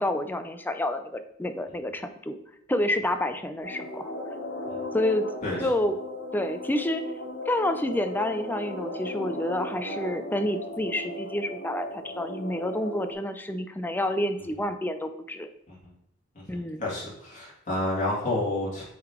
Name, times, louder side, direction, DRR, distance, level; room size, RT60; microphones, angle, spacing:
voice 1, 0.0-2.4 2.7-4.1 4.9-5.2 5.6-6.0 6.3-7.0 7.5-15.5 16.5-16.9, left 1 dB, 10° left, 8 dB, 0.4 m, -29 dB
sound 1, 3.6-13.1, left 1 dB, 80° left, 1.3 m, -36 dB
voice 2, 16.5-18.8, left 2 dB, 40° left, -6 dB, 2.5 m, -30 dB
8.4 x 3.8 x 3.0 m, 0.72 s
head